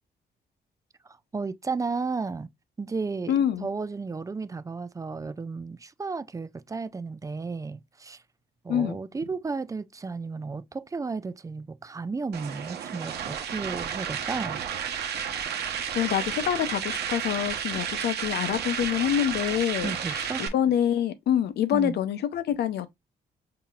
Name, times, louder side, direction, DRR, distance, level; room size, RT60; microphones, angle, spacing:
voice 1, 1.0-2.5 2.8-3.3 3.6-8.2 8.6-14.6 19.8-20.4 21.7-22.0, right 4 dB, 20° right, 0.4 m, -33 dB
voice 2, 3.3-3.7 8.7-9.0 15.6-22.9, left 10 dB, 80° left, 0.7 m, -26 dB
sound 1, 12.3-20.5, right 8 dB, 80° right, 0.9 m, -32 dB
5.6 x 2.8 x 2.4 m
cardioid pair, 100°, 17 cm